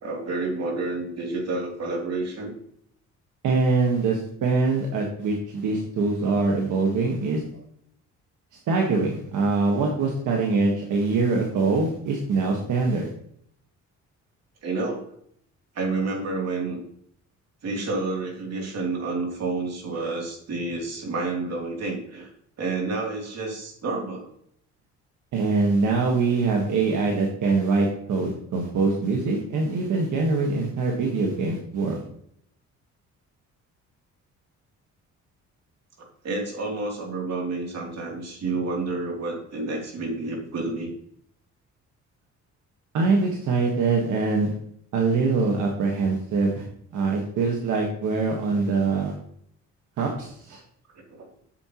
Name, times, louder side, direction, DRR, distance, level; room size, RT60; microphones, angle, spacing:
voice 1, 0.0-2.5 14.6-15.0 15.7-16.8 17.6-22.3 22.6-24.3 36.2-40.9 51.1-51.3, right 3 dB, 55° right, 0 dB, 3.1 m, -29 dB
voice 2, 3.4-7.4 8.7-13.1 25.3-32.0 42.9-44.5 44.9-46.6 46.9-49.1 50.0-50.6, right 3 dB, 80° right, 0 dB, 1.6 m, -23 dB
8.9 x 7.2 x 3.0 m, 0.67 s
cardioid pair, 90°, 30 cm